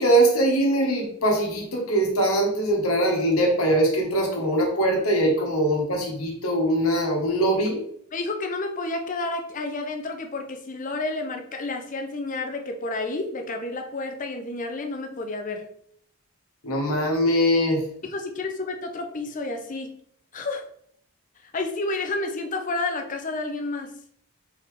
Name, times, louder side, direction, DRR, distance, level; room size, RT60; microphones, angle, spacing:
voice 1, 0.0-7.8 16.6-17.9, right 1 dB, 85° left, 0 dB, 1.3 m, -22 dB
voice 2, 8.1-15.7 18.0-19.9 20.3-20.7 21.4-23.9, left 2 dB, 35° left, 5 dB, 0.6 m, -30 dB
4.1 x 3.7 x 3.3 m, 0.65 s
head